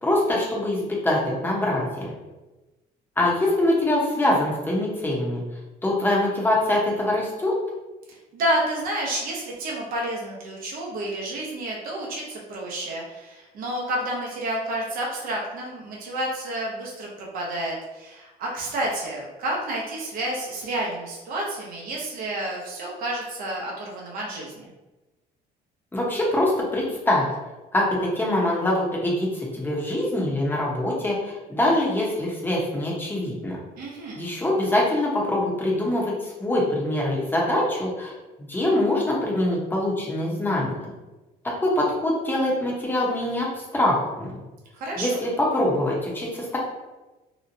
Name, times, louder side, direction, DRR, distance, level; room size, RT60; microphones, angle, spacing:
voice 1, 0.0-2.1 3.2-5.4 5.8-7.5 25.9-27.3 27.7-33.6 34.1-38.1 38.5-40.7 41.6-44.3 45.0-46.6, left 1 dB, 10° left, -3 dB, 0.8 m, -24 dB
voice 2, 8.3-24.7 33.8-34.2 44.8-45.2, right 1 dB, 60° right, -3 dB, 0.7 m, -30 dB
2.8 x 2.1 x 2.6 m, 1.1 s
cardioid pair, 110°, 17 cm